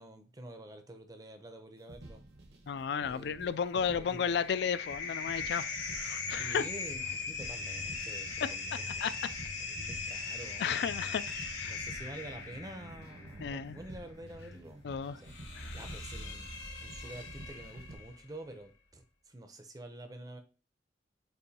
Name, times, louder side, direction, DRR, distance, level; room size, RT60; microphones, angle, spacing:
voice 1, 0.0-2.2 3.0-4.4 6.3-9.1 9.4-10.7 11.6-14.8 15.1-15.3 15.7-20.4, right 1 dB, 20° right, 0.6 m, -48 dB
sound 1, 1.8-18.0, right 1 dB, 60° right, 0.9 m, -52 dB
voice 2, 2.7-5.6 6.0-6.7 8.4-8.5 9.0-9.1 10.6-11.8 13.4-13.8 14.8-15.2 15.6-15.8, left 7 dB, 60° left, 0.3 m, -33 dB
sound 2, 3.7-18.2, left 4 dB, 85° left, 2.0 m, -40 dB
6.7 x 2.6 x 2.8 m
head